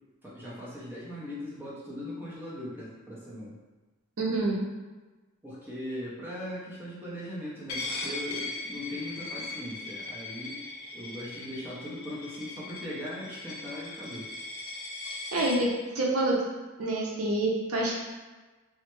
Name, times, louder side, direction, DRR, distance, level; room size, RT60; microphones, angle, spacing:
voice 1, 0.2-3.5 5.4-10.6 10.9-14.3, left 1 dB, 10° right, -7 dB, 0.6 m, -39 dB
voice 2, 4.2-4.6 15.3-15.7 15.9-16.4 16.8-17.9, right 2 dB, 70° right, -3 dB, 0.6 m, -27 dB
Coin (dropping), 7.7-15.6, left 2 dB, 85° left, 0.6 m, -39 dB
3.1 x 2.1 x 3.0 m, 1.2 s
head